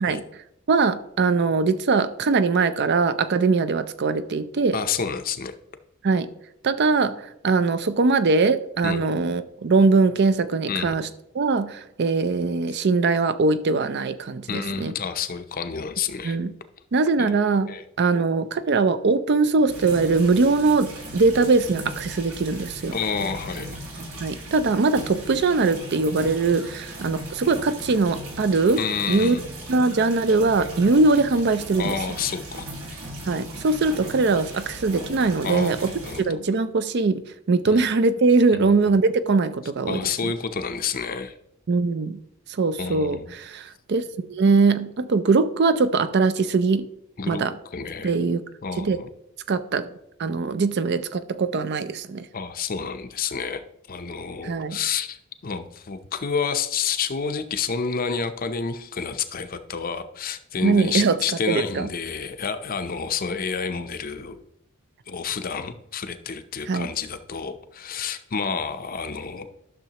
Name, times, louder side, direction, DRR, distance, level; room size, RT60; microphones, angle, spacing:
voice 1, 0.7-4.8 6.0-6.3 6.6-11.1 11.3-14.9 16.2-16.5 16.9-23.0 24.2-29.4 29.7-32.0 33.3-35.9 36.2-40.3 41.7-42.2 42.5-44.0 44.3-46.9 47.3-47.5 48.0-48.4 48.8-49.0 49.5-49.9 50.2-52.3 54.4-54.8 60.6-61.2 61.5-61.9 66.7-66.9, right 4 dB, 50° right, 0.5 m, -21 dB
voice 2, 4.7-5.6 8.8-9.0 10.7-10.9 14.5-16.4 17.2-17.4 17.7-17.8 22.9-23.8 28.8-29.4 31.8-32.6 35.4-36.3 37.7-37.8 38.5-38.8 39.9-41.3 42.8-43.3 47.2-47.4 47.7-48.1 48.6-49.1 52.3-64.4 65.1-69.5, left 6 dB, 40° left, 0.6 m, -29 dB
sound 1, 19.7-36.2, right 1 dB, 80° right, 2.1 m, -38 dB
12.0 x 6.4 x 2.9 m
head